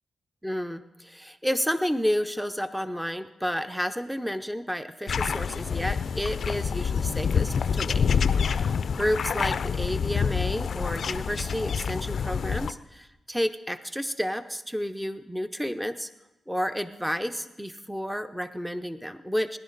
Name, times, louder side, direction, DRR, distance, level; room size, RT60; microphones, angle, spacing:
voice 1, 0.4-8.1 8.5-8.7 9.0-16.1 16.5-19.6, equal, 5° right, 10 dB, 0.6 m, -31 dB
sound 1, 5.1-12.7, left 6 dB, 65° left, 0.4 m, -27 dB
22.5 x 11.0 x 4.0 m, 1.0 s
cardioid pair, 70°, 0 cm